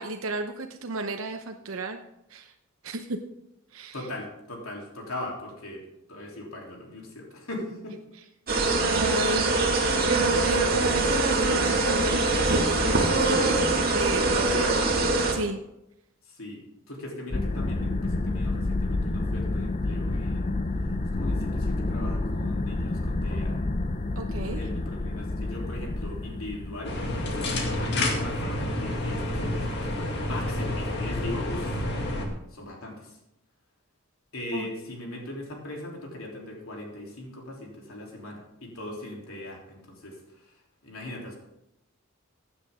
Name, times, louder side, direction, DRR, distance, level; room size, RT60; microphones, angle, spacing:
voice 1, 0.0-2.0 2.3-2.5 2.8-3.2 3.7-3.9 8.8-9.5 10.1-14.7 15.3-15.6 24.2-24.6 34.5-34.7, right 3 dB, 80° right, 5 dB, 0.8 m, -32 dB
voice 2, 3.9-5.8 6.1-8.0 14.5-15.0 16.2-16.6 16.9-20.6 21.1-23.6 24.5-31.8 32.5-33.2 34.3-40.6 40.8-41.4, left 1 dB, 85° left, -1 dB, 3.4 m, -39 dB
sound 1, 8.5-15.3, right 2 dB, 45° right, 2.2 m, -23 dB
sound 2, 17.3-27.2, left 2 dB, 35° left, 0.6 m, -29 dB
sound 3, 26.8-32.3, left 1 dB, 55° left, 2.1 m, -29 dB
16.0 x 9.9 x 3.7 m, 0.83 s
head